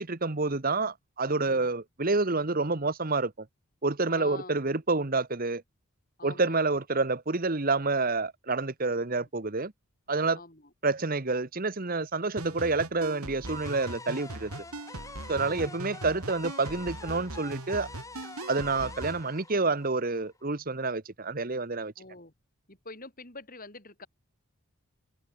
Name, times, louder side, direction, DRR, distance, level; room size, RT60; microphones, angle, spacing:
voice 1, 0.0-3.3 3.8-5.6 6.2-9.7 10.1-10.4 10.8-14.5 15.3-17.9 18.5-21.9, right 3 dB, 40° right, 1.2 m, -28 dB
voice 2, 4.1-4.6 6.2-6.7 9.2-9.3 10.3-10.7 15.3-15.9 22.0-22.3 22.7-24.1, left 2 dB, 40° left, 5.8 m, -46 dB
sound 1, 12.4-19.2, right 2 dB, 80° right, 3.5 m, -41 dB
sound 2, 13.5-20.4, left 3 dB, 15° left, 7.2 m, -46 dB
head